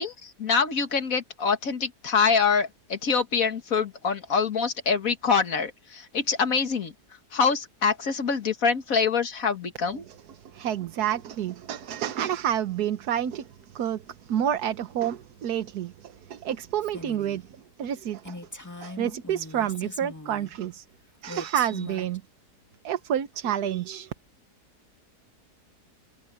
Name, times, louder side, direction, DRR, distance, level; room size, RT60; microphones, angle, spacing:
voice 1, 0.0-6.9 7.3-10.1, left 5 dB, 60° left, 2.1 m, -25 dB
voice 2, 10.5-13.5 13.7-14.0 14.3-17.4 17.8-18.3 18.8-20.8 21.2-22.2 22.8-24.1, right 10 dB, 75° right, 1.4 m, -29 dB
Female speech woman speaking, 16.8-17.4 17.8-17.9 18.2-20.5 21.3-22.2, left 2 dB, 10° left, 2.3 m, -40 dB
omnidirectional pair, 1.7 m